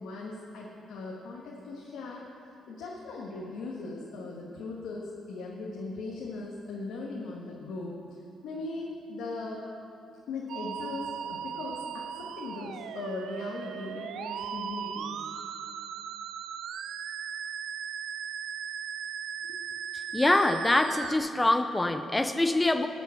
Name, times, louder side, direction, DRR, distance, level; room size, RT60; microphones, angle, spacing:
voice 1, 0.0-2.3 2.7-8.0 8.4-9.7 10.3-15.2 19.5-19.6, left 3 dB, 85° left, -3 dB, 1.6 m, -39 dB
Musical instrument, 10.5-21.2, right 8 dB, 80° right, 0.5 m, -38 dB
voice 2, 20.1-22.9, left 2 dB, 15° left, 8 dB, 0.6 m, -24 dB
18.5 x 7.0 x 5.9 m, 2.6 s
cardioid pair, 100°, 0 cm